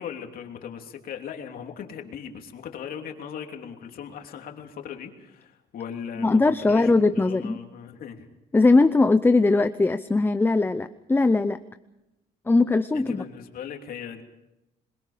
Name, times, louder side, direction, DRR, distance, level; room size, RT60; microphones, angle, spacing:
voice 1, 0.0-8.3 12.9-14.2, left 8 dB, 60° left, 3 dB, 3.0 m, -38 dB
voice 2, 6.2-7.6 8.5-11.6 12.5-13.2, left 3 dB, 10° left, 11 dB, 0.7 m, -20 dB
26.5 x 22.0 x 5.1 m, 0.94 s
cardioid pair, 110°, 17 cm